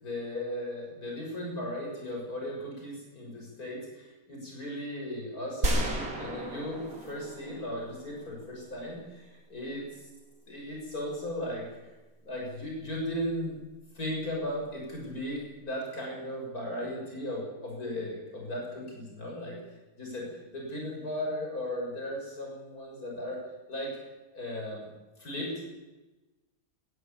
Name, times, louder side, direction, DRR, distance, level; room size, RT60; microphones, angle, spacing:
voice 1, 0.0-9.9 10.5-11.7 12.2-13.6 14.0-19.6 20.0-23.4 23.7-23.9 24.3-24.9 25.2-25.7, left 1 dB, 90° left, -2 dB, 7.0 m, -36 dB
sound 1, 5.6-8.5, right 2 dB, 75° right, 3.0 m, -33 dB
20.0 x 15.0 x 8.6 m, 1.1 s
omnidirectional pair, 1.5 m